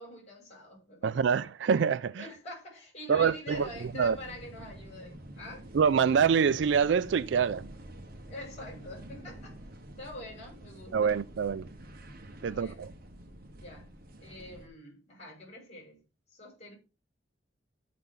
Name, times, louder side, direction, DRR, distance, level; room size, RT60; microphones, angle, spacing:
voice 1, 0.0-1.2 2.2-5.7 8.3-9.6 10.0-11.1 11.5-11.6 12.4-12.8 13.5-13.9 14.2-16.0 16.3-16.7, left 1 dB, 40° left, 6.1 m, -45 dB
voice 2, 1.0-2.2 3.1-3.7 4.0-4.2 5.7-7.6 10.9-11.6 12.4-12.9, right 6 dB, 70° right, 0.4 m, -25 dB
sound 1, 3.5-14.7, right 1 dB, 55° right, 1.2 m, -48 dB
13.5 x 5.8 x 3.7 m
head